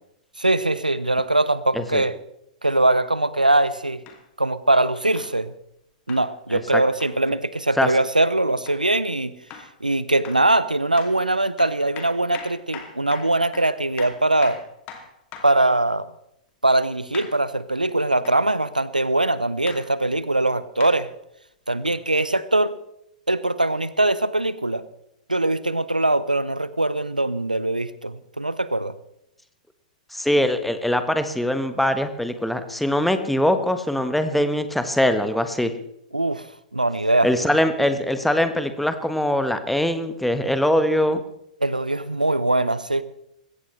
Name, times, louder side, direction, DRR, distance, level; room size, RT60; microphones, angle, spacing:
voice 1, 0.4-2.1 2.6-4.0 4.4-5.5 6.1-9.3 9.8-14.6 15.4-16.0 16.6-21.1 21.7-22.7 23.3-24.8 25.3-28.9 36.1-36.4 36.7-37.3 41.6-43.0, right 2 dB, 85° right, 17 dB, 0.7 m, -21 dB
sound 1, 4.1-4.2 5.2-5.4 6.1-6.3 7.0-7.2 7.9-8.1 8.7-8.8 9.5-9.7 10.2-10.5 11.0-11.2 11.6-15.6 17.1-17.4 18.2-18.4 19.7-19.9 20.8-21.0 21.9-22.0, left 7 dB, 35° left, 2.7 m, -40 dB
voice 2, 6.5-6.8 7.8-7.9 30.1-35.7 37.2-41.2, left 1 dB, ahead, 9 dB, 1.3 m, -22 dB
20.5 x 17.0 x 3.3 m, 0.78 s
figure-of-eight pair, 105°, 4 cm